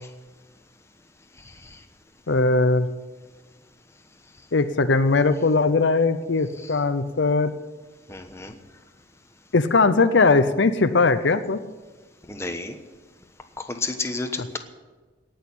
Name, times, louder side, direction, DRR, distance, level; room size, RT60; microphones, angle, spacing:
voice 1, 2.3-2.9 4.5-7.5 9.5-11.6 14.4-14.6, left 3 dB, 65° left, 11 dB, 0.7 m, -20 dB
voice 2, 8.1-8.5 12.3-12.8 13.6-14.6, left 3 dB, 15° left, 6 dB, 1.1 m, -30 dB
18.0 x 6.6 x 9.8 m, 1.3 s
head